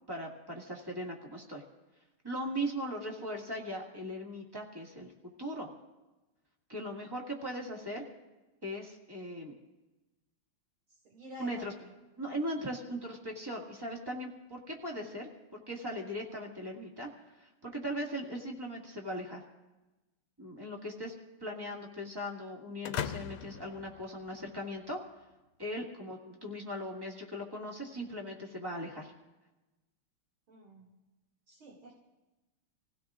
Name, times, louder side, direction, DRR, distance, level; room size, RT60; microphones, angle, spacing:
voice 1, 0.1-1.6 2.2-5.1 5.4-5.7 6.7-8.1 8.6-9.5 11.4-11.7 12.2-19.4 20.4-21.1 21.4-25.0 25.6-29.1, equal, 10° right, -1 dB, 1.7 m, -39 dB
voice 2, 10.9-11.9 30.5-30.9 31.5-31.9, equal, 65° right, -4 dB, 3.1 m, -49 dB
sound 1, 22.8-24.8, left 9 dB, 85° left, 1.6 m, -39 dB
28.0 x 16.5 x 2.5 m, 1.1 s
omnidirectional pair, 2.4 m